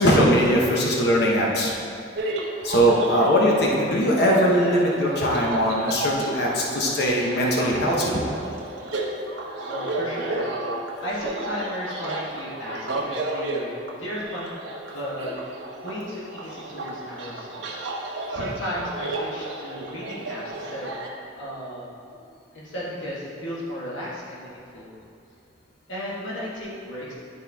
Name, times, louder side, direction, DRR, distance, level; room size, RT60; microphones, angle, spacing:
voice 1, 0.0-1.7 2.6-8.2, equal, 60° left, -2 dB, 1.0 m, -20 dB
sound 1, 2.2-21.1, right 2 dB, 70° right, 1.0 m, -33 dB
voice 2, 9.3-10.5 10.7-17.6 18.3-20.9 21.3-22.0 22.5-24.9 25.9-27.1, equal, 80° left, -7 dB, 1.5 m, -34 dB
11.0 x 4.4 x 3.5 m, 2.4 s
head